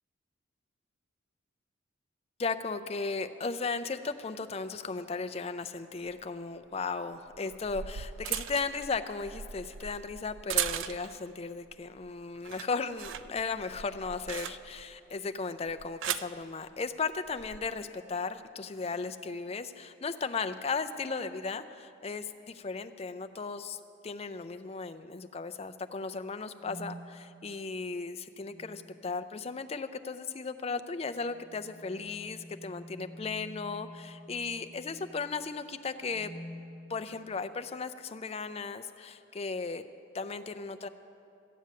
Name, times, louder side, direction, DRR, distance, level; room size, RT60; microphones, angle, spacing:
voice 1, 2.4-36.3 36.9-39.8 40.1-40.9, left 4 dB, 30° left, 10 dB, 0.4 m, -36 dB
sound 1, 6.1-6.2 7.3-11.3 11.7-12.1 12.4-14.9 15.7-16.4 17.3-17.6, right 10 dB, 65° right, 0.4 m, -38 dB
sound 2, 26.6-27.1 28.4-28.9 31.1-35.3 36.0-36.6, equal, 15° right, 1.9 m, -48 dB
14.0 x 8.6 x 7.4 m, 2.6 s
head